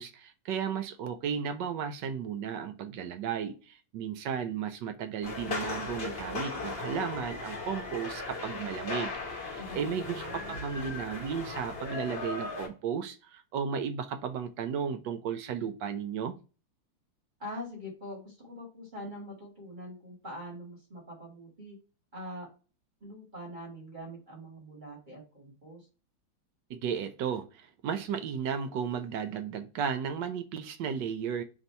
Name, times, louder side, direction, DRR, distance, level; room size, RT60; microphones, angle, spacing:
voice 1, 0.0-16.4 26.7-31.4, right 7 dB, 75° right, 1.1 m, -34 dB
sound 1, 5.2-12.7, left 3 dB, 35° left, 1.2 m, -37 dB
voice 2, 9.6-10.6 17.4-21.8 22.1-22.5 23.0-25.8, equal, 25° right, 1.4 m, -43 dB
3.6 x 2.6 x 4.1 m
omnidirectional pair, 2.2 m